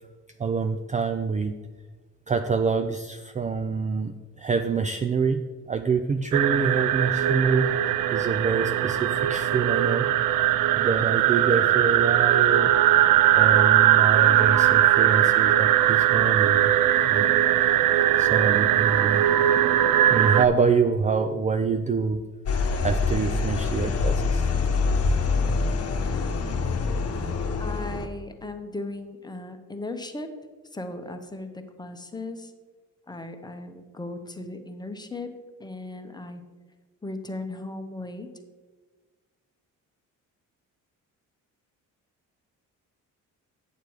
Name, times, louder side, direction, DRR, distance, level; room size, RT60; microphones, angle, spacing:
voice 1, 0.4-1.5 2.3-7.7 8.1-10.1 10.8-12.7 13.3-16.7 17.0-17.3 18.2-19.2 20.1-22.2 22.8-24.5, right 5 dB, 25° right, 8 dB, 0.4 m, -26 dB
sound 1, 6.3-20.5, right 12 dB, 75° right, 0.5 m, -20 dB
sound 2, 22.5-28.1, left 4 dB, 45° left, 1.1 m, -25 dB
voice 2, 27.6-30.3 30.7-32.5 33.1-35.3 35.6-36.4 37.0-38.3, left 2 dB, 10° left, 6 dB, 0.9 m, -37 dB
9.1 x 6.8 x 4.7 m, 1.4 s
cardioid pair, 105°, 33 cm